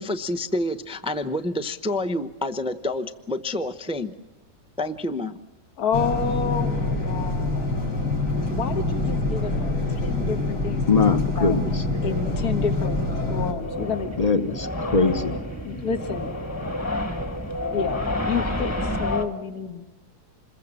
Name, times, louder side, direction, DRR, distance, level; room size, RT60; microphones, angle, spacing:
voice 1, 0.0-4.1 4.8-5.4, left 1 dB, 5° right, 9 dB, 0.4 m, -28 dB
voice 2, 5.8-7.7 8.5-10.8 11.1-11.6 12.0-13.0 13.3-14.1 15.3-16.3 17.6-19.8, left 6 dB, 65° left, 7 dB, 2.1 m, -30 dB
sound 1, 5.9-13.5, left 2 dB, 85° left, 6.4 m, -25 dB
voice 3, 10.9-11.6 14.2-15.4, left 4 dB, 30° left, 9 dB, 0.8 m, -21 dB
sound 2, 13.6-19.3, left 1 dB, 10° left, 1.5 m, -29 dB
27.0 x 22.0 x 7.5 m, 1.1 s
omnidirectional pair, 1.8 m